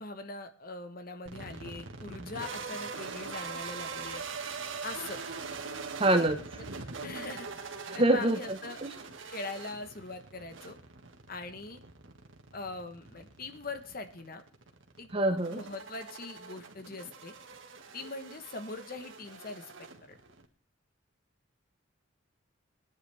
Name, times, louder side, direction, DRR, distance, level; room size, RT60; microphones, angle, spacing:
voice 1, 0.0-4.2 4.8-5.2 7.0-7.5 7.9-8.8 9.3-10.8 11.3-11.8 12.5-14.4 15.0-17.3 17.9-19.7 20.1-20.2, left 3 dB, 50° left, 8 dB, 1.2 m, -41 dB
sound 1, 1.3-20.5, right 4 dB, 75° right, 1.7 m, -43 dB
voice 2, 6.0-6.6 7.9-8.9 15.1-15.6, right 1 dB, 30° right, 6 dB, 1.1 m, -26 dB
22.5 x 9.7 x 3.5 m, 0.40 s
head